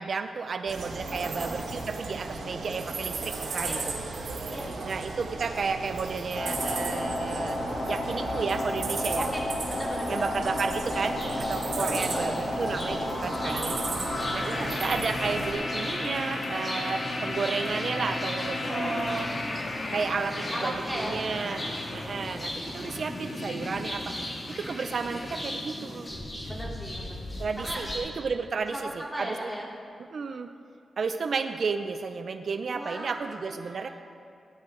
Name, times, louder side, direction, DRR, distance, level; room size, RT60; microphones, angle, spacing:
voice 1, 0.0-3.8 4.8-7.6 7.9-9.3 10.1-13.8 14.3-14.5 14.8-19.3 19.9-21.7 21.9-24.3 24.6-26.1 27.4-29.5 30.1-30.5 31.0-33.9, right 5 dB, 65° right, 8 dB, 0.6 m, -32 dB
sound 1, 0.7-15.5, right 3 dB, 85° right, 1.9 m, -35 dB
voice 2, 1.0-1.5 3.6-3.8 4.5-4.7 8.1-8.5 9.2-10.5 11.8-12.4 13.4-13.8 14.5-14.7 18.6-19.4 20.5-21.2 22.1-22.9 26.5-27.2 27.6-27.8 28.7-29.7 32.7-33.9, equal, 5° left, -5 dB, 3.5 m, -37 dB
sound 2, 6.3-25.4, left 2 dB, 50° left, 1.9 m, -33 dB
sound 3, 10.9-28.0, left 1 dB, 30° left, 3.6 m, -38 dB
17.5 x 11.0 x 3.8 m, 2.5 s
cardioid pair, 65°, 0 cm